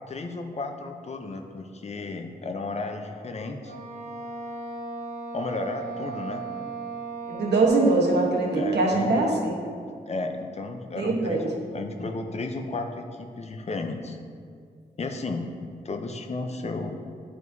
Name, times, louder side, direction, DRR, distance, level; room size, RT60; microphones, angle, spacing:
voice 1, 0.1-3.7 5.3-6.4 8.6-9.3 10.1-11.4 11.7-14.2 15.0-15.5 15.8-17.0, left 3 dB, 40° left, 4 dB, 0.5 m, -33 dB
Wind instrument woodwind instrument, 3.6-8.2, right 3 dB, 55° right, 1.1 m, -36 dB
voice 2, 7.3-9.5 11.0-11.4, right 2 dB, 90° right, -1 dB, 1.1 m, -22 dB
9.9 x 4.7 x 2.7 m, 2.2 s
wide cardioid pair, 140°, 17 cm